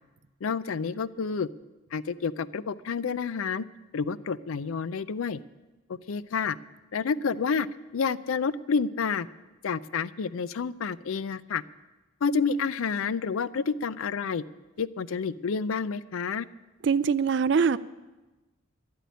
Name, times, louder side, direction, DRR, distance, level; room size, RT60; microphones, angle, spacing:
voice 1, 0.4-1.5 1.9-3.6 3.9-5.4 6.1-6.6 6.9-7.7 7.9-9.3 9.6-11.6 12.2-14.4 14.8-16.5, left 5 dB, 85° left, 17 dB, 0.4 m, -29 dB
voice 2, 16.8-17.8, right 6 dB, 55° right, 14 dB, 0.4 m, -23 dB
11.5 x 8.4 x 9.3 m, 1.1 s
head